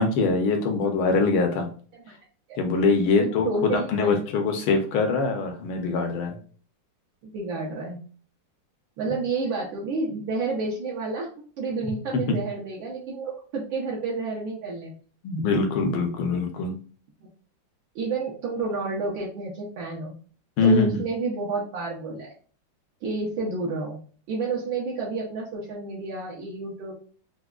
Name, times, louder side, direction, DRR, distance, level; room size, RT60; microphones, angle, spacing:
voice 1, 0.0-1.7 2.6-6.4 9.1-9.2 12.1-12.4 15.2-16.8 20.6-21.0, left 4 dB, 80° left, 4 dB, 1.5 m, -23 dB
voice 2, 3.2-4.1 7.2-8.0 9.0-11.3 11.6-14.9 17.9-20.1 20.6-22.3 23.0-24.0 24.3-26.9, right 3 dB, 75° right, -4 dB, 1.5 m, -30 dB
4.7 x 2.2 x 2.3 m, 0.42 s
omnidirectional pair, 2.2 m